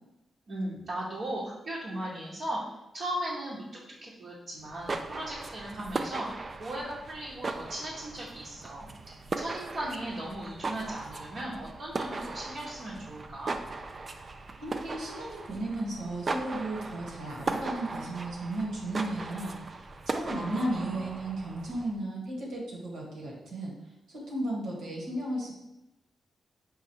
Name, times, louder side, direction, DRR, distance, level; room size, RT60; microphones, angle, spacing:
voice 1, 0.5-2.6 2.9-3.6 4.0-6.3 6.6-8.9 9.4-13.5 20.2-21.0, right 1 dB, 65° right, -7 dB, 1.1 m, -37 dB
sound 1, 4.6-22.0, right 3 dB, 45° right, 0.4 m, -38 dB
voice 2, 14.6-23.7 24.1-25.5, right 1 dB, 85° right, -4 dB, 1.5 m, -34 dB
5.1 x 2.2 x 4.5 m, 0.93 s
supercardioid pair, 50°, 0 cm